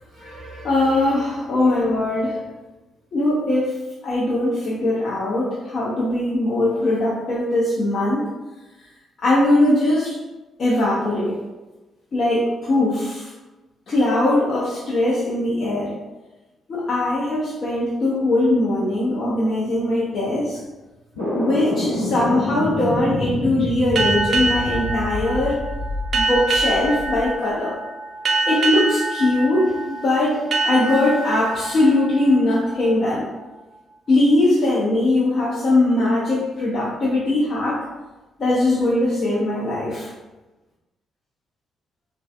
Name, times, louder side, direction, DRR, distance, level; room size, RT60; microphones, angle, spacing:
voice 1, 0.2-2.4 3.1-3.7 4.0-8.3 9.2-10.2 10.6-11.4 12.1-13.3 13.9-15.9 16.7-20.6 21.3-25.6 26.1-27.8 28.5-33.3 34.1-37.8 38.4-40.1, left 1 dB, 45° left, -7 dB, 0.6 m, -20 dB
sound 1, 21.1-27.2, left 1 dB, 75° left, 0.8 m, -27 dB
sound 2, 23.9-33.2, right 3 dB, 50° right, 0.3 m, -25 dB
3.1 x 2.5 x 2.4 m, 1.1 s
figure-of-eight pair, 40°, 0 cm